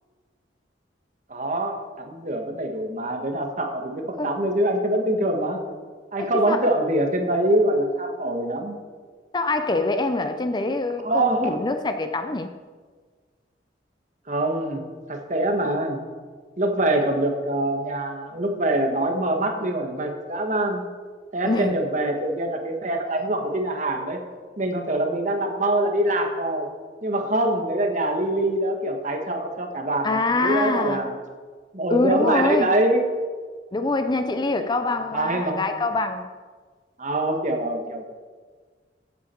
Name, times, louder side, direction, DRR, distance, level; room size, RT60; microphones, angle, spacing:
voice 1, 1.3-5.6 6.1-8.8 11.0-11.5 14.3-16.0 16.6-20.8 21.3-24.2 24.6-26.7 27.0-31.1 31.7-33.0 35.1-35.6 37.0-38.1, right 1 dB, 45° right, 1.5 m, -24 dB
voice 2, 6.2-6.7 9.3-12.5 21.5-21.8 30.0-31.1 31.9-32.7 33.7-36.3, left 2 dB, 25° left, 0.5 m, -25 dB
14.5 x 8.6 x 4.5 m
head